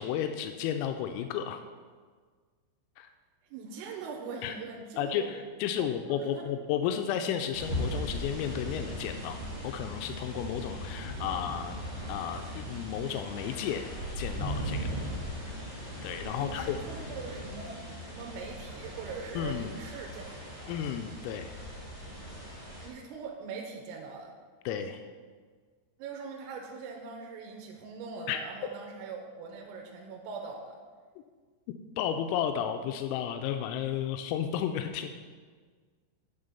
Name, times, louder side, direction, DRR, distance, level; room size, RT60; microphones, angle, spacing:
voice 1, 0.0-1.6 3.0-3.1 4.4-4.6 5.0-9.4 9.6-11.8 12.1-13.9 14.2-15.0 16.0-16.8 19.4-19.7 20.7-21.5 24.7-25.0 28.3-28.4 32.0-35.1, left 9 dB, 90° left, 7 dB, 3.2 m, -33 dB
voice 2, 3.5-5.3 5.8-6.5 16.4-20.8 22.8-24.3 26.0-30.8, right 4 dB, 90° right, 1 dB, 3.5 m, -42 dB
sound 1, 7.5-22.9, equal, 35° right, 2.8 m, -38 dB
8.8 x 6.4 x 5.5 m, 1.6 s
omnidirectional pair, 5.8 m